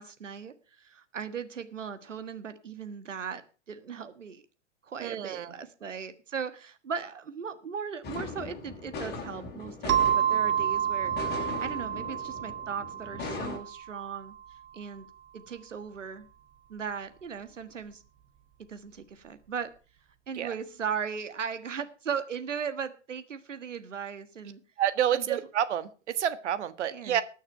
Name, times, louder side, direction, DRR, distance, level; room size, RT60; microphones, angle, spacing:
voice 1, 0.0-4.4 4.8-14.3 14.7-15.1 15.3-16.3 16.7-18.0 18.7-19.7 20.3-24.6 25.1-25.4 26.9-27.2, right 6 dB, 90° right, 11 dB, 1.6 m, -38 dB
voice 2, 5.0-5.5 20.3-20.5 24.8-27.2, right 10 dB, 70° right, 13 dB, 1.6 m, -29 dB
sound 1, 8.0-13.6, left 3 dB, 25° left, 5.0 m, -39 dB
sound 2, 9.9-14.3, right 9 dB, 30° right, 1.4 m, -29 dB
19.5 x 6.5 x 5.7 m, 0.36 s
hypercardioid pair, 110°, 36 cm